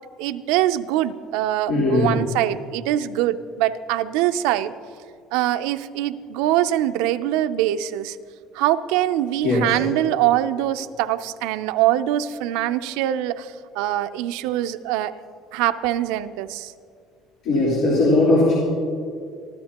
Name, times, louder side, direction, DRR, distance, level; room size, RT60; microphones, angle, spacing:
voice 1, 0.2-4.7 5.3-8.2 8.5-15.1 15.5-16.7, right 13 dB, 90° right, 10 dB, 0.5 m, -23 dB
voice 2, 1.7-2.2 9.4-9.8 17.4-18.6, left 2 dB, 55° left, -7 dB, 3.7 m, -18 dB
25.0 x 14.5 x 2.9 m, 2.2 s
cardioid pair, 180°, 0 cm